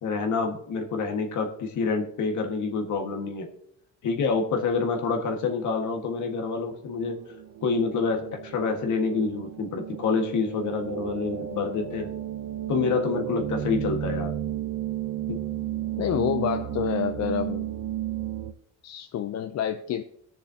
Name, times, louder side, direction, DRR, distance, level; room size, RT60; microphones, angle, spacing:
voice 1, 0.0-3.5 4.0-7.2 7.6-12.1 12.7-14.3 15.3-15.4, left 4 dB, 75° left, 4 dB, 1.7 m, -27 dB
sound 1, 6.6-18.5, right 11 dB, 60° right, 0.8 m, -33 dB
voice 2, 16.0-17.7 18.8-20.0, left 9 dB, 60° left, 8 dB, 0.6 m, -28 dB
18.5 x 6.7 x 2.8 m, 0.70 s
cardioid pair, 90°, 30 cm